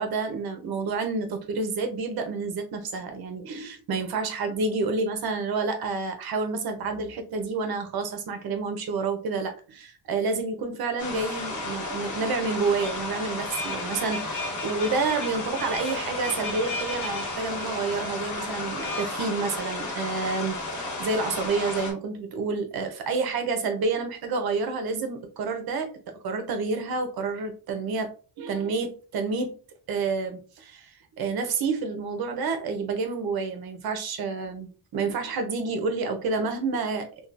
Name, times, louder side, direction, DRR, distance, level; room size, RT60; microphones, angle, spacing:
voice 1, 0.0-25.9 26.2-28.1 28.4-29.5 29.9-37.1, right 4 dB, 65° right, 6 dB, 0.8 m, -29 dB
sound 1, 11.0-21.9, left 2 dB, 45° left, 1.1 m, -33 dB
sound 2, 12.8-19.1, left 2 dB, 85° left, 1.1 m, -38 dB
3.0 x 2.3 x 2.4 m, 0.37 s
cardioid pair, 105°, 40 cm